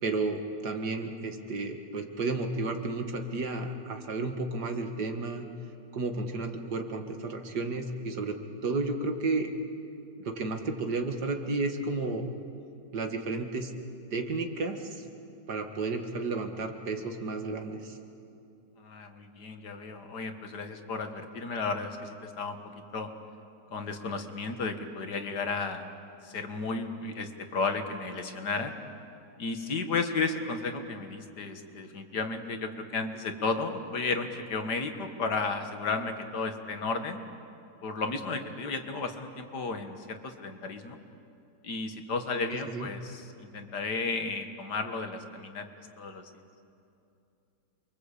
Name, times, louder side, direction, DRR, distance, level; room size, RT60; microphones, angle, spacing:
voice 1, 0.0-5.5 5.9-9.5 10.2-12.3 12.9-13.7 14.1-15.0 15.5-18.0 42.5-42.9, right 3 dB, 70° right, 5 dB, 2.4 m, -32 dB
voice 2, 18.8-23.1 23.7-25.9 26.2-28.7 29.4-37.2 37.8-41.0 41.6-45.7 46.0-46.3, left 4 dB, 70° left, 6 dB, 2.2 m, -33 dB
28.5 x 23.5 x 8.4 m, 2.6 s
omnidirectional pair, 1.8 m